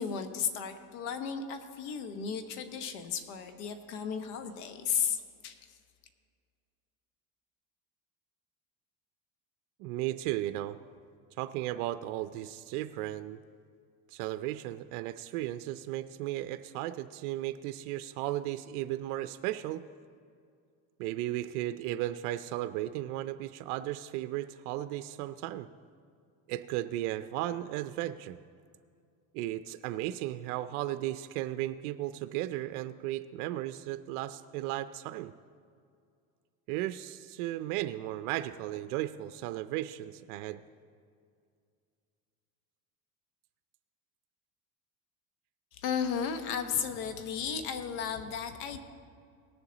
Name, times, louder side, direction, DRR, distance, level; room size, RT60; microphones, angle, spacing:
voice 1, 0.0-5.6 45.8-48.8, left 7 dB, 90° left, 8 dB, 1.1 m, -34 dB
voice 2, 9.8-10.8 11.4-13.4 14.1-19.8 21.0-25.7 26.5-28.4 29.3-35.3 36.7-40.6, right 14 dB, 80° right, 11 dB, 0.5 m, -35 dB
18.0 x 7.0 x 3.9 m, 2.3 s
supercardioid pair, 105°, 44 cm